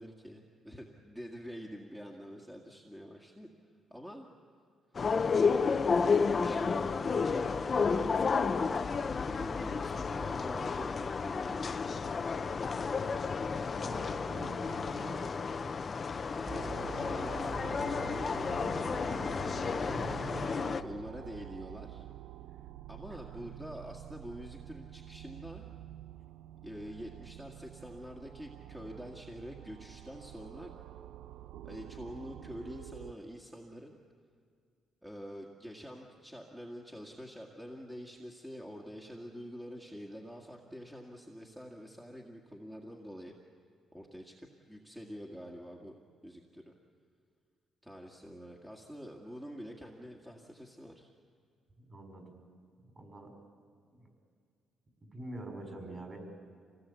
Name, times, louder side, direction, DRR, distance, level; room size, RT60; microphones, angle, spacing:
voice 1, 0.0-3.5 3.9-4.3 5.6-8.9 9.3-13.1 16.3-18.9 20.0-22.1 22.9-25.6 26.6-30.7 31.6-33.9 35.0-43.3 43.9-46.7 47.8-51.1, equal, 5° right, 0 dB, 2.0 m, -46 dB
sound 1, 5.0-20.8, left 5 dB, 40° left, 0.9 m, -31 dB
voice 2, 13.7-15.3 19.9-20.8 51.8-52.4 52.9-53.3 53.9-54.1 55.0-56.2, right 2 dB, 35° right, 4 dB, 5.2 m, -45 dB
sound 2, 16.5-33.1, right 13 dB, 85° right, 0.5 m, -48 dB
25.5 x 18.5 x 8.4 m, 2.1 s
cardioid pair, 90°, 0 cm